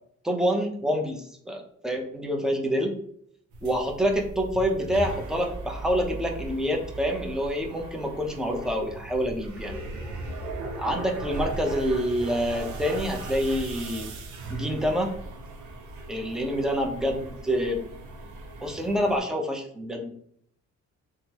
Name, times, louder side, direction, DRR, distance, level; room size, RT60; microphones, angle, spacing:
voice 1, 0.2-3.0 3.6-9.8 10.8-14.1 14.5-15.2 16.1-17.8 18.6-20.1, equal, ahead, 1 dB, 0.6 m, -27 dB
sound 1, 3.5-19.2, right 2 dB, 75° right, 0.7 m, -37 dB
3.6 x 2.2 x 2.9 m, 0.65 s
cardioid pair, 90°, 30 cm